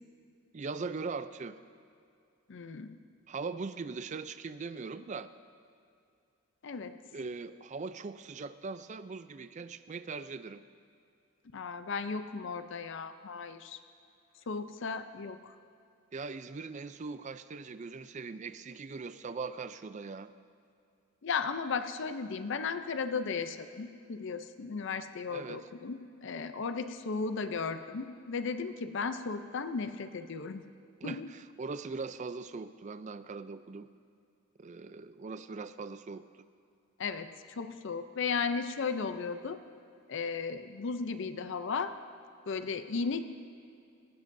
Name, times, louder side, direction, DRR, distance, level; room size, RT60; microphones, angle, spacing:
voice 1, 0.5-1.6 3.3-5.3 7.1-10.6 16.1-20.3 25.3-25.7 31.0-33.9 34.6-36.2, right 4 dB, 35° right, 12 dB, 0.4 m, -40 dB
voice 2, 2.5-3.0 6.6-6.9 11.5-13.8 14.5-15.5 21.2-30.6 31.0-31.3 37.0-39.6 40.1-41.9 42.5-43.2, left 5 dB, 60° left, 10 dB, 0.5 m, -35 dB
18.0 x 16.0 x 2.6 m, 2.5 s
head